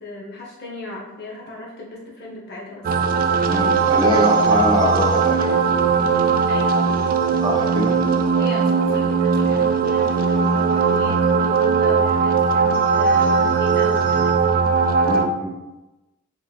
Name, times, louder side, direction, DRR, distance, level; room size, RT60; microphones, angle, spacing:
voice 1, 0.0-2.9 6.5-6.9 8.4-14.7, left 2 dB, 45° left, -4 dB, 1.1 m, -36 dB
sound 1, 2.8-15.3, right 5 dB, 40° right, 0.3 m, -19 dB
voice 2, 3.5-5.6 7.4-8.0 15.0-15.5, equal, 20° right, -3 dB, 0.9 m, -22 dB
4.2 x 3.4 x 3.3 m, 1.0 s
head